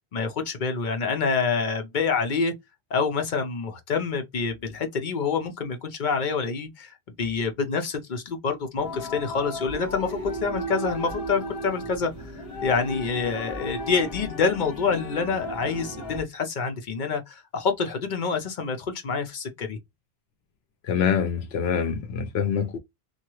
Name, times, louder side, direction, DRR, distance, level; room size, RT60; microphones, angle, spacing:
voice 1, 0.1-2.5 2.9-12.1 12.6-19.8, left 5 dB, 55° left, 0.7 m, -27 dB
sound 1, 8.8-16.2, equal, 35° left, 1.3 m, -35 dB
voice 2, 20.8-22.8, left 7 dB, 80° left, 0.8 m, -25 dB
2.8 x 2.2 x 3.0 m
omnidirectional pair, 1.1 m